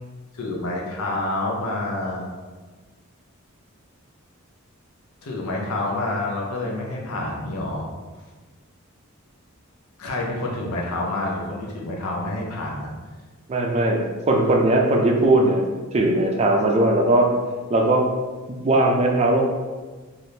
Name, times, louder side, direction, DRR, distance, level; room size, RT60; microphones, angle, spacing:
voice 1, 0.3-2.3 5.2-7.9 10.0-12.9, left 2 dB, 85° left, -2 dB, 0.6 m, -28 dB
voice 2, 13.5-14.0 14.3-15.6 15.9-17.3 17.7-18.0 18.5-19.4, right 2 dB, 30° right, 1 dB, 0.3 m, -19 dB
3.4 x 2.5 x 2.7 m, 1.3 s
head